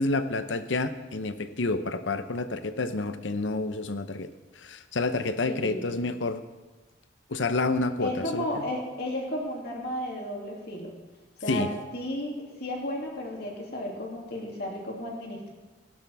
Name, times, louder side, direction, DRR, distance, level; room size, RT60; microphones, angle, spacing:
voice 1, 0.0-4.3 4.6-6.4 7.3-8.4 11.5-11.7, left 3 dB, 80° left, 10 dB, 0.8 m, -29 dB
voice 2, 5.5-5.9 8.0-10.9 11.4-11.7 11.9-15.5, left 1 dB, 60° left, -1 dB, 2.7 m, -33 dB
16.5 x 12.0 x 3.5 m, 1.2 s
head